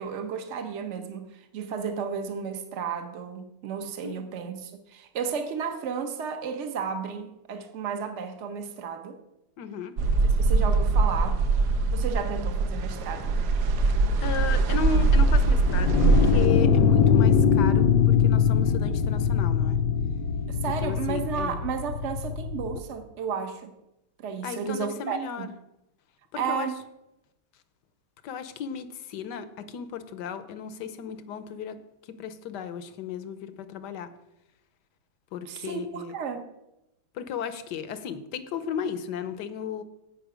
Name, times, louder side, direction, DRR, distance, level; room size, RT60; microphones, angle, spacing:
voice 1, 0.0-9.2 10.2-11.4 11.9-13.4 20.5-23.7 24.2-25.5 26.4-26.8 35.5-36.5, right 6 dB, 45° right, 1.2 m, -33 dB
voice 2, 9.6-9.9 13.9-19.8 20.8-21.6 24.4-25.5 26.3-26.7 28.2-31.8 32.1-34.1 35.3-36.1 37.1-39.8, left 7 dB, 70° left, 1.4 m, -35 dB
sound 1, 10.0-16.5, right 3 dB, 70° right, 1.3 m, -22 dB
sound 2, 15.5-22.8, left 7 dB, 90° left, 1.3 m, -22 dB
16.0 x 5.5 x 5.0 m
omnidirectional pair, 1.9 m